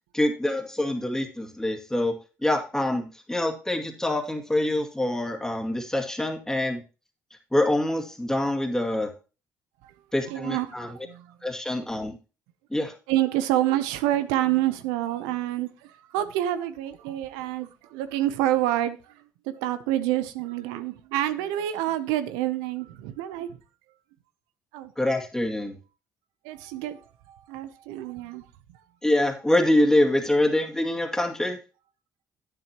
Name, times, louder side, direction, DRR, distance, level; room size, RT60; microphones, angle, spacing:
voice 1, 0.1-6.8 7.5-9.1 10.1-11.1 11.4-12.2 12.7-12.9 25.0-25.8 29.0-31.6, left 1 dB, 10° left, 2.2 m, -25 dB
voice 2, 10.3-10.7 11.0-11.3 13.1-19.0 19.6-23.5 24.7-24.9 26.4-27.0 27.3-28.4, right 13 dB, 90° right, 0.6 m, -27 dB
10.5 x 9.3 x 2.9 m
supercardioid pair, 65°, 7 cm